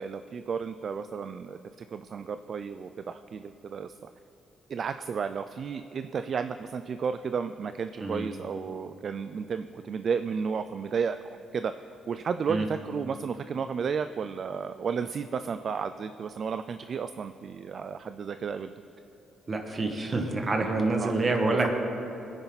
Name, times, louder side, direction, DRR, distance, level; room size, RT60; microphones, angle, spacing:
voice 1, 0.0-4.1 4.7-11.7 12.1-18.7 21.0-21.7, right 6 dB, 50° right, 10 dB, 0.4 m, -33 dB
voice 2, 19.5-21.7, right 2 dB, 35° right, 3 dB, 1.8 m, -27 dB
20.5 x 9.7 x 4.1 m, 3.0 s
cardioid pair, 90°, 0 cm